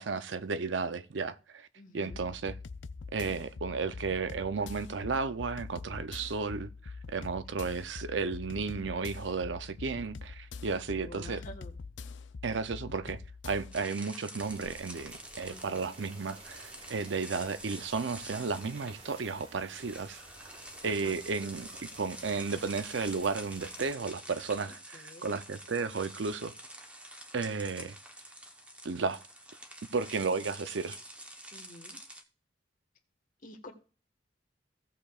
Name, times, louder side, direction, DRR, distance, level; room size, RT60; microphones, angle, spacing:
voice 1, 0.0-1.7 1.9-2.5 3.1-11.4 12.4-13.2 13.4-20.2 20.8-26.5 27.3-28.0 28.8-29.2 29.9-31.0, right 4 dB, 75° right, 0.6 m, -33 dB
voice 2, 1.7-2.2 11.0-11.8 15.5-15.9 20.8-21.2 24.6-25.4 31.5-32.0 33.4-33.7, left 1 dB, 45° left, 1.5 m, -49 dB
sound 1, 2.1-13.8, left 4 dB, 80° left, 0.5 m, -44 dB
sound 2, 13.7-32.2, right 1 dB, 5° right, 1.0 m, -48 dB
sound 3, 14.4-23.9, right 2 dB, 35° right, 1.8 m, -53 dB
16.5 x 6.8 x 2.4 m
head